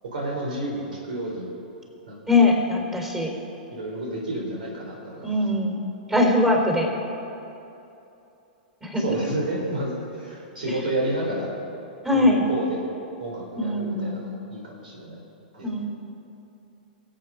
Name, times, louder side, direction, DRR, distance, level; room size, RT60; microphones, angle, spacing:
voice 1, 0.0-1.5 2.1-2.2 3.7-5.4 9.0-11.5 12.1-12.8 13.2-15.2 15.5-15.8, right 1 dB, 65° right, -2 dB, 3.6 m, -30 dB
voice 2, 2.3-3.3 5.2-5.8 6.1-6.9 8.8-9.0 12.0-12.5 13.6-14.2 15.6-15.9, left 2 dB, 10° right, 0 dB, 3.9 m, -21 dB
23.5 x 8.2 x 5.3 m, 2.8 s
figure-of-eight pair, 105°, 5 cm